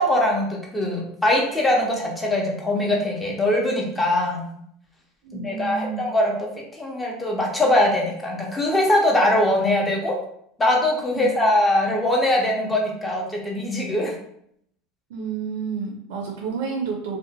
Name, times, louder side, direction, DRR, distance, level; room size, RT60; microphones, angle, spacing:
voice 1, 0.0-4.4 5.3-6.5 6.7-10.1 10.6-14.1, left 1 dB, 15° left, -1 dB, 0.7 m, -22 dB
voice 2, 5.2-6.0 11.1-11.3 15.1-17.2, right 6 dB, 80° right, 0 dB, 0.4 m, -30 dB
2.6 x 2.1 x 2.7 m, 0.70 s
supercardioid pair, 125°, 0 cm